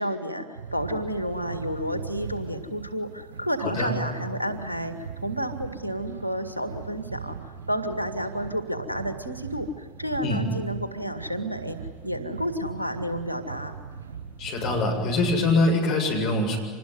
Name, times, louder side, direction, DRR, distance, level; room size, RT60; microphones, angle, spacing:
voice 1, 0.0-4.9 5.2-11.8 12.0-13.7, equal, 90° right, 8 dB, 2.0 m, -31 dB
sound 1, 0.6-15.6, right 6 dB, 70° right, 5.4 m, -40 dB
voice 2, 14.4-16.6, left 2 dB, 45° left, 2 dB, 7.3 m, -23 dB
26.5 x 20.5 x 9.4 m, 1.5 s
figure-of-eight pair, 80°, 0 cm